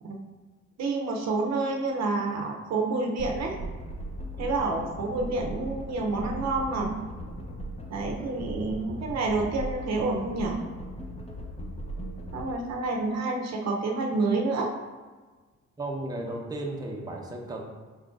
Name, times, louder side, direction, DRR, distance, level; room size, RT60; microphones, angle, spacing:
voice 1, 0.8-3.6 4.4-6.9 7.9-10.6 12.3-14.7, right 3 dB, 60° right, 1 dB, 0.7 m, -28 dB
sound 1, 3.2-12.6, right 1 dB, 20° left, 0.7 m, -38 dB
voice 2, 15.8-17.6, right 2 dB, 15° right, -1 dB, 0.7 m, -34 dB
5.3 x 3.7 x 2.5 m, 1.4 s
cardioid pair, 90°, 30 cm